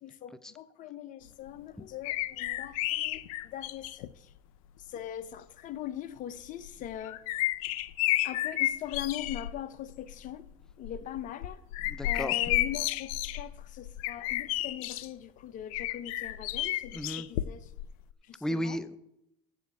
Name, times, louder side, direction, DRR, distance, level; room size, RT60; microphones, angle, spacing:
voice 1, 0.0-4.3 4.8-7.4 8.2-10.5 10.8-11.6 12.0-17.7 18.2-18.8, left 11 dB, 50° left, 0.8 m, -41 dB
sound 1, 2.0-4.1 5.0-5.1 6.6-9.5 9.9-10.3 10.7-15.1 15.7-17.9 18.1-18.2, left 15 dB, 85° left, 0.5 m, -32 dB
voice 2, 12.0-12.3 16.9-17.3 18.4-19.0, equal, 5° left, 0.5 m, -33 dB
8.0 x 7.3 x 7.8 m
supercardioid pair, 100°, 17 cm